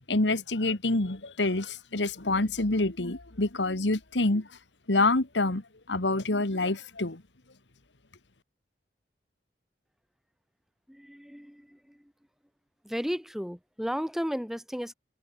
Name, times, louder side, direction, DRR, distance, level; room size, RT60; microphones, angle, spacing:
voice 1, 0.1-4.5 4.9-7.2, left 2 dB, 80° left, 1.9 m, -27 dB
voice 2, 10.9-12.1 12.8-14.9, equal, ahead, 1.9 m, -34 dB
head